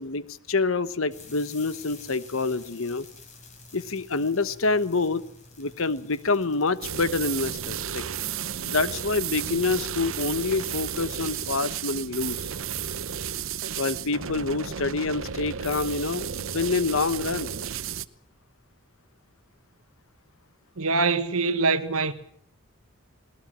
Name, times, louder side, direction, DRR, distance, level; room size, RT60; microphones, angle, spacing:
voice 1, 0.0-3.1 3.7-5.2 5.6-8.0 8.7-12.4 13.8-17.5, left 3 dB, 70° left, 1.1 m, -27 dB
sound 1, 1.1-9.0, left 3 dB, 35° left, 4.8 m, -50 dB
sound 2, 6.8-18.1, right 8 dB, 70° right, 0.8 m, -33 dB
voice 2, 20.8-22.1, right 4 dB, 85° right, 1.6 m, -24 dB
20.5 x 19.5 x 7.5 m
head